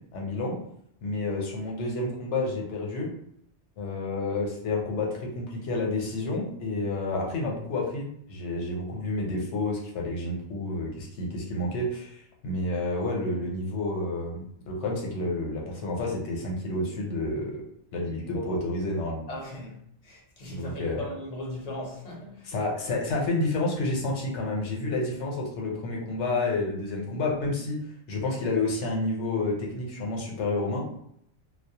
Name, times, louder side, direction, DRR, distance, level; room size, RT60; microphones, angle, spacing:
voice 1, 0.1-0.6 1.0-3.1 3.8-17.6 17.9-19.3 20.5-21.1 22.4-27.8 28.1-30.8, left 2 dB, 75° left, 1.0 m, -30 dB
voice 2, 19.3-19.8 20.0-22.5, left 1 dB, 40° left, 0.6 m, -38 dB
2.3 x 2.0 x 2.7 m
omnidirectional pair, 1.2 m